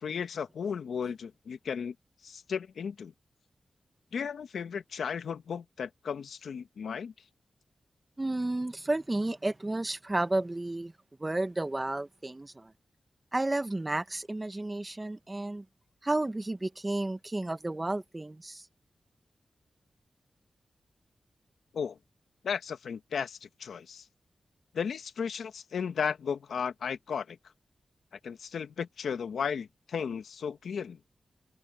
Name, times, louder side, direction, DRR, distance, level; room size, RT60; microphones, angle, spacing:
voice 1, 0.0-1.9 2.2-3.1 4.1-7.1 21.7-22.0 22.4-24.0 24.7-27.4 28.2-31.0, left 6 dB, 90° left, 1.4 m, -35 dB
voice 2, 8.2-10.9 11.2-12.7 13.3-15.6 16.0-18.6, right 2 dB, 25° right, 1.5 m, -32 dB
cardioid pair, 70°, 0 cm